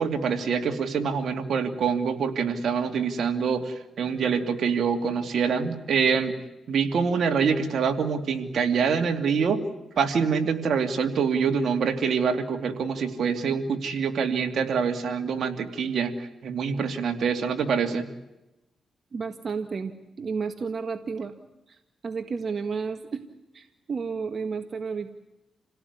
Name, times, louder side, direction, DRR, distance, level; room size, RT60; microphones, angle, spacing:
voice 1, 0.0-6.4 6.7-9.6 10.0-18.1, right 6 dB, 70° right, 6 dB, 2.8 m, -25 dB
voice 2, 19.1-21.3 21.7-23.2 23.5-25.1, right 5 dB, 50° right, 6 dB, 1.8 m, -32 dB
28.5 x 17.5 x 9.8 m, 0.97 s
cardioid pair, 75°, 0 cm